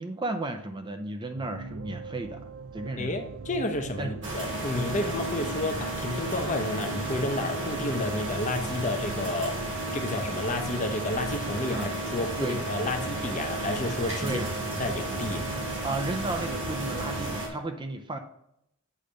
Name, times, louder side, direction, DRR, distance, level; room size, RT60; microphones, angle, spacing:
voice 1, 0.0-2.4 2.7-3.2 4.0-4.3 11.7-11.9 12.4-12.7 14.2-14.5 15.8-18.2, right 2 dB, 20° right, 6 dB, 0.5 m, -34 dB
sound 1, 1.4-17.4, right 4 dB, 90° right, 0.5 m, -40 dB
voice 2, 3.0-9.6 9.9-14.4 14.8-15.4, left 2 dB, 35° left, 5 dB, 0.8 m, -31 dB
sound 2, 4.2-17.5, right 1 dB, 60° right, 2.1 m, -33 dB
8.5 x 3.3 x 5.0 m, 0.76 s
head